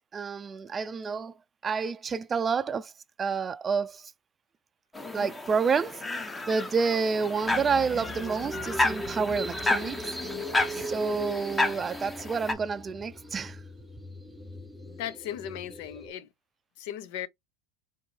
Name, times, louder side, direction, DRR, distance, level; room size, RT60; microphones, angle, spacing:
voice 1, 0.1-1.3 1.6-2.9 3.2-4.1 5.1-6.0 6.5-10.1 10.7-13.6, right 5 dB, 30° right, 0.4 m, -29 dB
sound 1, 4.9-12.5, left 2 dB, 15° left, 0.9 m, -31 dB
sound 2, 7.4-16.1, equal, 10° right, 1.1 m, -40 dB
voice 2, 14.9-16.3 16.8-17.3, left 11 dB, 65° left, 0.6 m, -37 dB
4.5 x 2.7 x 3.4 m
hypercardioid pair, 85°, 0 cm